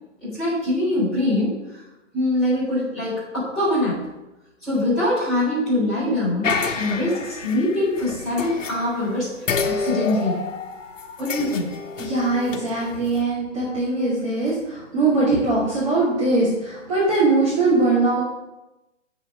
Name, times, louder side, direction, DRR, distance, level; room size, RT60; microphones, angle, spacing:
voice 1, 0.2-1.6 2.1-4.0 4.6-9.3 9.6-10.5 11.2-11.7, left 1 dB, ahead, -15 dB, 3.9 m, -23 dB
sound 1, 6.4-9.1 9.5-13.2, left 5 dB, 75° left, 1.2 m, -29 dB
voice 2, 12.0-18.2, right 3 dB, 25° right, -9 dB, 2.9 m, -21 dB
7.0 x 6.9 x 6.4 m, 1.0 s
hypercardioid pair, 180°, 38 cm